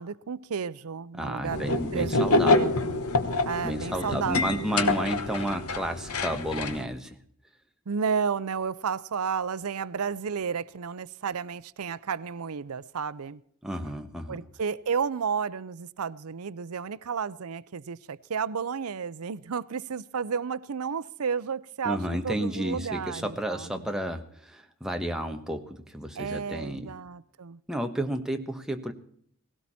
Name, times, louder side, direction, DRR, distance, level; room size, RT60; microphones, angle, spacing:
voice 1, 0.0-2.3 2.5-3.0 3.5-4.9 7.9-13.4 14.3-23.9 26.2-27.6, right 6 dB, 90° right, 0.6 m, -32 dB
voice 2, 1.2-2.6 3.6-7.2 13.6-14.4 21.8-26.9 27.7-28.9, right 1 dB, 5° right, 1.3 m, -32 dB
sound 1, 1.5-6.8, left 2 dB, 85° left, 1.4 m, -26 dB
18.0 x 17.0 x 4.3 m
head